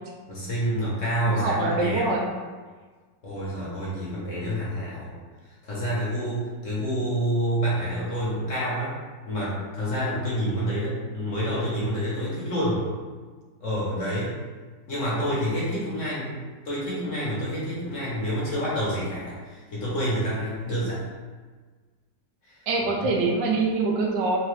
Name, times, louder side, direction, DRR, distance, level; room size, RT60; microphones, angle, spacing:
voice 1, 0.3-2.0 3.2-5.1 5.5-8.9 9.3-12.8 13.6-14.3 14.9-16.4 16.6-21.0 22.4-22.5 23.0-23.1, equal, 50° left, -7 dB, 1.3 m, -28 dB
voice 2, 1.3-2.3 22.7-24.4, right 3 dB, 75° right, -1 dB, 1.3 m, -24 dB
4.6 x 2.7 x 3.2 m, 1.4 s
omnidirectional pair, 2.0 m